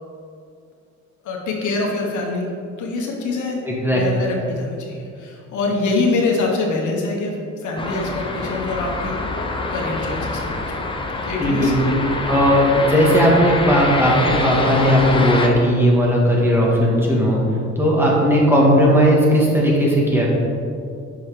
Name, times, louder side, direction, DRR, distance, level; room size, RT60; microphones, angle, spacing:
voice 1, 1.2-2.5 2.8-3.6 3.9-10.9 11.2-11.7, left 3 dB, 75° left, -1 dB, 1.3 m, -25 dB
voice 2, 3.6-4.0 11.4-12.0 12.3-17.4 17.7-20.3, equal, 5° right, -4 dB, 1.8 m, -16 dB
sound 1, 7.8-15.5, left 2 dB, 15° left, 0.8 m, -25 dB
6.1 x 5.5 x 4.9 m, 2.5 s
cardioid pair, 90°, 30 cm